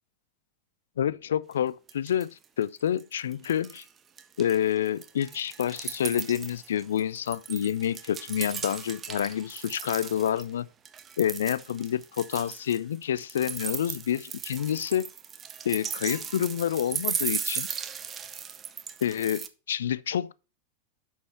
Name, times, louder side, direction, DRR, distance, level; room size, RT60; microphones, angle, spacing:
voice 1, 1.0-3.8 4.4-10.7 11.2-15.1 15.6-17.7 19.0-20.3, left 10 dB, 65° left, 0.3 m, -28 dB
sound 1, 1.5-1.6 1.9-2.4 2.8-3.9 4.2-10.4 10.8-19.5, right 7 dB, 25° right, 0.6 m, -37 dB
6.2 x 5.5 x 4.3 m
figure-of-eight pair, 90°, 0 cm